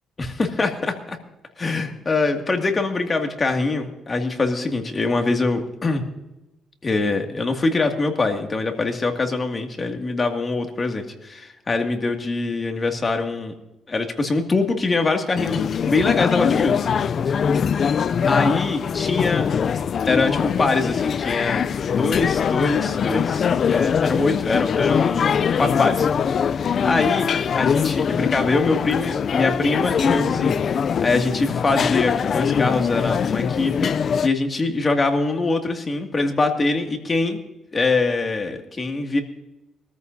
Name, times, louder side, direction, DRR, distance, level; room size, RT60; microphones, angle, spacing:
voice 1, 0.2-1.2 1.6-6.0 6.8-13.5 13.9-16.8 18.2-19.5 20.1-26.1 26.8-27.3 27.5-37.4 37.7-39.2, left 3 dB, 30° left, 4 dB, 2.2 m, -23 dB
sound 1, 15.3-34.3, left 7 dB, 55° left, 0.4 m, -22 dB
23.5 x 14.0 x 2.7 m, 0.97 s
cardioid pair, 90°, 0 cm